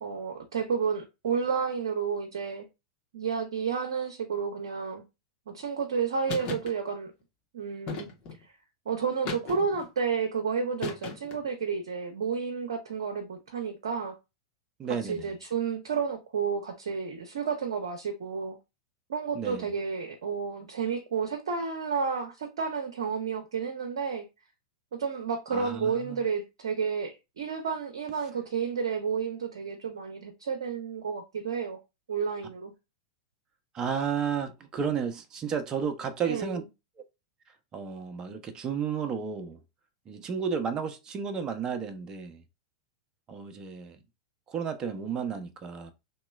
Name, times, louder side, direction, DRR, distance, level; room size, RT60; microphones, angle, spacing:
voice 1, 0.0-2.7 3.1-5.0 5.5-7.1 7.5-8.1 8.9-14.1 15.0-18.6 19.1-24.3 24.9-31.8 32.1-32.7 36.3-36.6, right 6 dB, 70° right, 0.7 m, -31 dB
sound 1, 6.3-6.7 7.9-8.4 9.3-9.9 10.8-11.5, left 4 dB, 40° left, 1.2 m, -36 dB
voice 2, 14.8-15.3 19.3-19.7 25.5-26.2 33.7-36.6 37.7-39.6 40.1-42.4 43.3-44.0 44.5-45.9, right 6 dB, 30° right, 0.7 m, -32 dB
2.9 x 2.9 x 2.3 m
hypercardioid pair, 100°, 3 cm